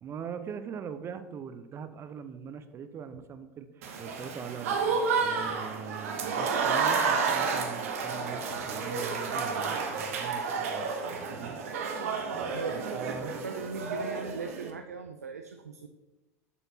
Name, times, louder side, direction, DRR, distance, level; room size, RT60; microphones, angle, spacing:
voice 1, 0.0-4.8 5.2-10.9 11.3-11.6 12.7-13.5, right 7 dB, 30° right, 11 dB, 0.6 m, -41 dB
Applause / Crowd, 3.8-14.7, right 5 dB, 65° right, 0.9 m, -31 dB
voice 2, 12.5-15.9, right 5 dB, 80° right, 7 dB, 0.4 m, -39 dB
7.0 x 6.9 x 2.8 m, 1.1 s
figure-of-eight pair, 80°, 8 cm